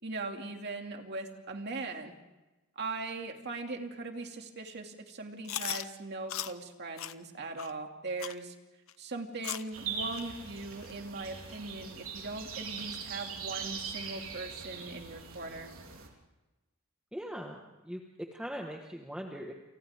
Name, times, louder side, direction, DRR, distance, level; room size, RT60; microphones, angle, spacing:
voice 1, 0.0-2.1 2.8-8.5 9.0-15.7, right 3 dB, 50° right, 3 dB, 2.6 m, -40 dB
Chewing mastication, 5.4-5.8 6.3-6.5 7.0-7.1 7.6-7.7 8.2-8.4 8.9-9.0 9.4-9.7 10.1-10.2 10.8-10.9 11.5-11.6 12.2-12.3, left 11 dB, 70° left, 0.9 m, -37 dB
sound 1, 9.7-16.1, right 6 dB, 80° right, 3.8 m, -41 dB
voice 2, 17.1-19.5, equal, 5° right, 1 dB, 1.6 m, -41 dB
29.0 x 28.5 x 3.7 m, 1.1 s
head